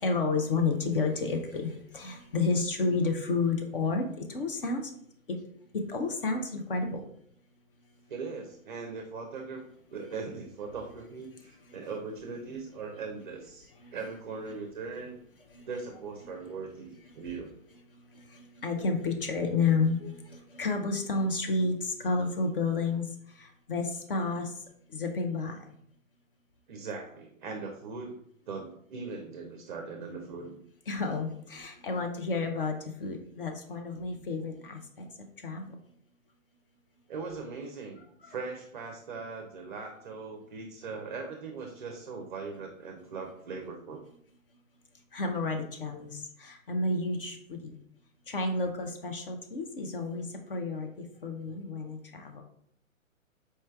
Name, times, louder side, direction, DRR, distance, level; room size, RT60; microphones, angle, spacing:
voice 1, 0.0-4.9 5.7-7.0 18.3-23.0 23.4-24.5 24.9-25.6 30.9-34.8 35.4-35.7 45.1-47.7 48.3-50.2 50.5-52.4, left 3 dB, 45° left, 4 dB, 0.5 m, -31 dB
voice 2, 8.1-9.6 9.9-15.2 15.7-17.5 26.7-28.2 28.5-30.6 37.1-44.0, right 4 dB, 40° right, 3 dB, 0.4 m, -40 dB
4.3 x 3.1 x 2.3 m, 0.68 s
figure-of-eight pair, 135°, 41 cm